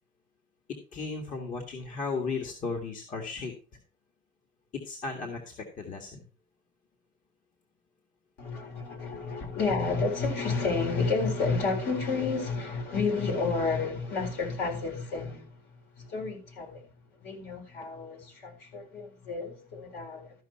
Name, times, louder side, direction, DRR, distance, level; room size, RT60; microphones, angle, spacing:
voice 1, 0.9-3.5 4.8-6.2 9.4-9.6, left 4 dB, 50° left, 1.9 m, -35 dB
voice 2, 8.4-16.9 17.2-20.4, left 4 dB, 75° left, 4.2 m, -31 dB
13.5 x 5.7 x 4.3 m
cardioid pair, 110°, 17 cm